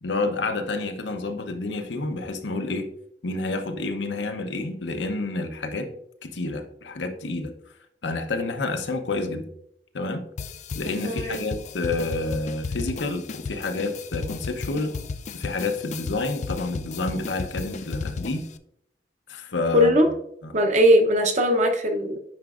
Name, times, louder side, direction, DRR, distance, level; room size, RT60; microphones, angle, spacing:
voice 1, 0.0-2.9 3.2-5.9 6.2-7.5 8.0-9.5 9.9-10.2 10.7-14.9 15.3-18.5 19.3-20.0 20.4-20.5, left 3 dB, 85° left, 7 dB, 0.7 m, -29 dB
sound 1, 10.4-18.6, left 4 dB, 40° left, 0.3 m, -34 dB
voice 2, 11.0-11.4 19.7-20.1 20.5-22.2, equal, 40° right, 5 dB, 0.7 m, -19 dB
9.4 x 5.0 x 2.4 m, 0.75 s
head